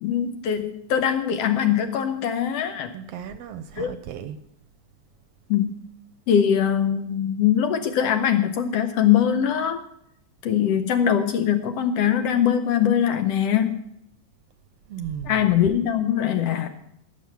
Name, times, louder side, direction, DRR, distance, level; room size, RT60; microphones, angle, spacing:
voice 1, 0.0-2.9 3.8-3.9 5.5-5.7 6.3-9.8 10.4-13.9 15.3-16.7, left 9 dB, 70° left, 1.6 m, -22 dB
voice 2, 2.9-4.4 14.9-15.4, right 8 dB, 70° right, 1.6 m, -35 dB
18.5 x 7.1 x 5.9 m
omnidirectional pair, 3.3 m